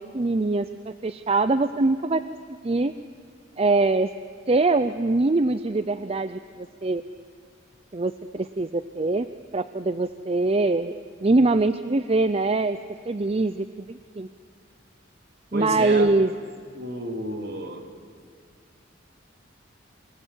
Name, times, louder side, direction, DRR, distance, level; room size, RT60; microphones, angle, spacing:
voice 1, 0.0-2.2 2.6-2.9 3.6-4.1 4.5-7.0 7.9-9.3 9.5-10.9 11.2-12.8 13.1-14.3 15.5-16.3, right 2 dB, 30° right, 12 dB, 0.5 m, -23 dB
voice 2, 15.5-16.2 16.7-17.9, right 1 dB, 55° right, 4 dB, 3.0 m, -31 dB
28.5 x 19.0 x 8.3 m, 2.1 s
head